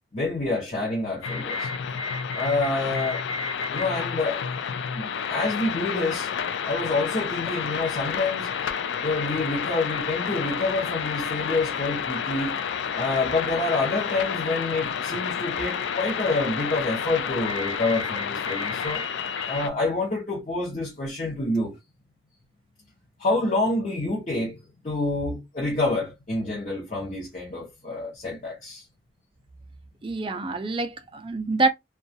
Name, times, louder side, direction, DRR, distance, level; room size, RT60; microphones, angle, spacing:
voice 1, 0.1-1.7 2.3-3.2 3.7-4.4 4.9-6.3 6.6-8.5 9.0-12.6 12.9-19.1 19.5-21.8 23.2-24.6 24.8-28.9, left 2 dB, 40° left, 0.7 m, -27 dB
sound 1, 1.2-19.7, left 7 dB, 80° left, 0.3 m, -30 dB
voice 2, 30.0-31.7, right 3 dB, 25° right, 0.4 m, -26 dB
2.4 x 2.3 x 2.6 m
head